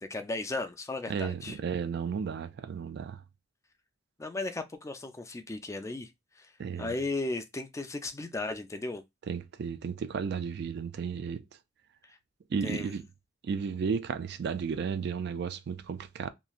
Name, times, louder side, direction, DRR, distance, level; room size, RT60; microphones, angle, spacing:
voice 1, 0.0-1.6 4.2-6.1 6.4-6.5 6.8-9.0 12.0-12.2 12.6-12.9, left 2 dB, 15° left, 0.4 m, -35 dB
voice 2, 1.1-3.2 6.6-6.9 9.3-11.4 12.5-13.0 13.4-16.3, right 6 dB, 60° right, 0.3 m, -33 dB
3.0 x 2.5 x 2.3 m
head